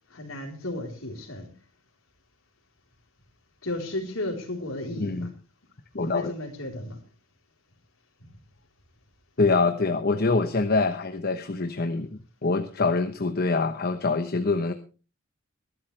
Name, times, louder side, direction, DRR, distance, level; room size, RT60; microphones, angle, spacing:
voice 1, 0.1-1.5 3.6-5.3 6.0-7.0 8.2-8.3, left 1 dB, 85° left, 4.0 m, -34 dB
voice 2, 5.0-5.3 5.9-6.3 9.4-12.1 12.4-14.7, left 3 dB, 50° left, 1.0 m, -25 dB
22.5 x 12.0 x 3.3 m
head